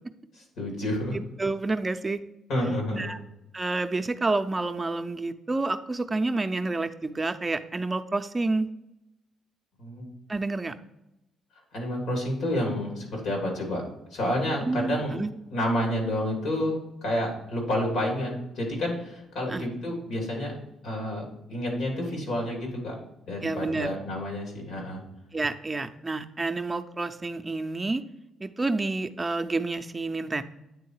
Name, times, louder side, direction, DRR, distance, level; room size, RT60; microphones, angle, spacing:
voice 1, 0.3-1.2 2.5-3.1 9.8-10.1 11.7-13.8 14.1-15.2 15.5-20.5 20.8-23.0 23.3-25.0, left 1 dB, 80° left, 0 dB, 3.0 m, -29 dB
voice 2, 1.1-2.2 2.9-3.2 3.5-8.7 10.3-10.7 14.6-15.3 19.5-19.7 23.4-24.0 25.3-28.0 28.4-30.4, right 3 dB, 20° right, 9 dB, 0.6 m, -29 dB
8.9 x 3.8 x 4.7 m, 0.88 s
cardioid pair, 90°, 0 cm